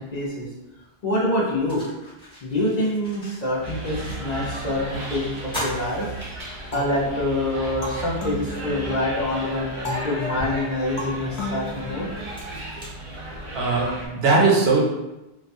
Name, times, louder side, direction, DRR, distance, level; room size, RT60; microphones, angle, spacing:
voice 1, 0.1-0.5 1.0-1.8 2.4-6.1 6.7-9.7 10.0-12.1 13.8-13.9, left 1 dB, 50° left, -6 dB, 0.6 m, -26 dB
sound 1, 1.2-4.6 4.9-5.0 5.4-6.9 7.4-7.5 8.9-9.0 9.5-13.7, equal, 5° left, 0.7 m, -39 dB
sound 2, 3.6-14.1, right 1 dB, 45° right, 0.4 m, -34 dB
sound 3, 6.7-9.2 9.8-12.6, left 2 dB, 85° left, 0.9 m, -35 dB
voice 2, 13.5-14.8, right 3 dB, 75° right, -2 dB, 0.8 m, -19 dB
2.3 x 2.1 x 2.6 m, 0.99 s
omnidirectional pair, 1.1 m